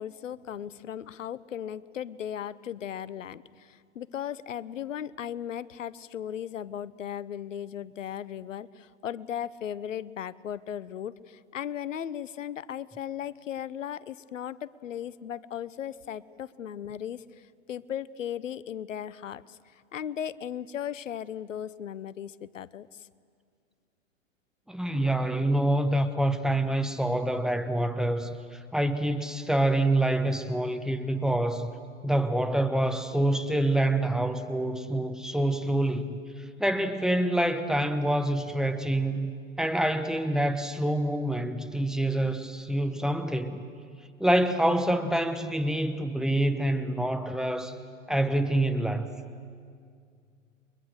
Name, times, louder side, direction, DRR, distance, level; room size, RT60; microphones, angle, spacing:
voice 1, 0.0-23.1, left 9 dB, 70° left, 19 dB, 0.9 m, -37 dB
voice 2, 24.7-31.7 32.0-36.2 36.6-39.3 39.6-43.7 44.2-47.7 48.1-49.1, right 1 dB, ahead, 8 dB, 1.0 m, -26 dB
29.5 x 23.0 x 6.6 m, 2.2 s
figure-of-eight pair, 110°, 39 cm